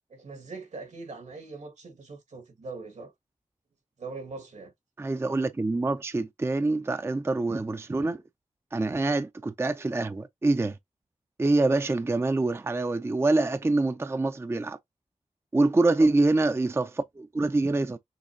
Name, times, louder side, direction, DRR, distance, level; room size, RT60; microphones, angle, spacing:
voice 1, 0.1-3.1 4.0-4.7 9.0-9.2 16.0-16.1, right 3 dB, 75° right, 1.7 m, -41 dB
voice 2, 5.0-8.2 8.7-10.8 11.4-14.8 15.5-18.0, right 2 dB, 20° right, 0.4 m, -25 dB
6.5 x 2.9 x 2.7 m
wide cardioid pair, 65°, 12 cm